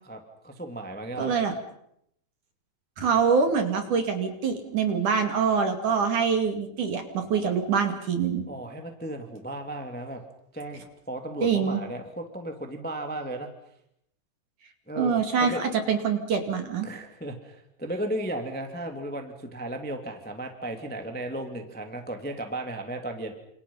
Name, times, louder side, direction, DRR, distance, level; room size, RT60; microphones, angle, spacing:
voice 1, 0.0-1.3 8.5-10.2 10.5-13.5 14.9-15.6 16.8-23.3, right 1 dB, 5° left, 5 dB, 1.8 m, -35 dB
voice 2, 1.2-1.5 3.0-8.5 11.4-11.8 15.0-16.9, right 6 dB, 50° right, 6 dB, 3.5 m, -25 dB
29.0 x 28.0 x 5.7 m, 0.74 s
omnidirectional pair, 5.3 m